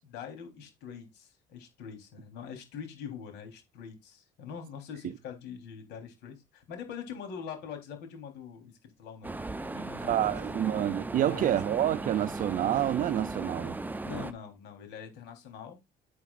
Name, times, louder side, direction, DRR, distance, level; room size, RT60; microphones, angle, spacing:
voice 1, 0.0-10.3 11.2-11.6 14.0-15.8, left 7 dB, 85° left, 3.8 m, -44 dB
sound 1, 9.2-14.3, right 2 dB, 10° right, 0.7 m, -37 dB
voice 2, 10.1-13.8, right 12 dB, 55° right, 0.5 m, -28 dB
9.7 x 9.3 x 2.5 m
cardioid pair, 110°, 17 cm